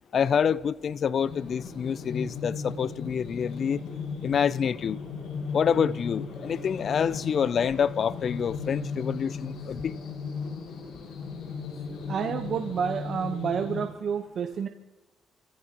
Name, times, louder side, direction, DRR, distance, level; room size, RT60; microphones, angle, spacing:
voice 1, 0.1-3.8 4.2-5.0 5.5-9.9, left 7 dB, 55° left, 0.4 m, -27 dB
sound 1, 1.2-13.9, left 5 dB, 80° left, 5.5 m, -36 dB
voice 2, 12.1-14.7, right 7 dB, 60° right, 1.0 m, -29 dB
29.0 x 15.5 x 3.0 m
cardioid pair, 90°, 0 cm